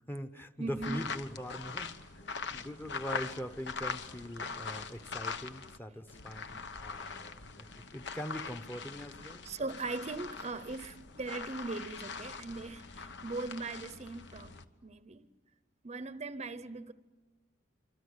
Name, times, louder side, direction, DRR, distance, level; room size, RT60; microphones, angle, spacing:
voice 1, 0.1-2.3 2.5-9.5, equal, 10° left, 1.0 m, -42 dB
voice 2, 0.6-1.1 9.4-14.5 14.8-15.3 15.8-16.9, right 3 dB, 35° right, 0.8 m, -39 dB
sound 1, 0.8-5.8 6.1-14.6, left 5 dB, 65° left, 1.1 m, -42 dB
27.5 x 26.0 x 8.1 m
head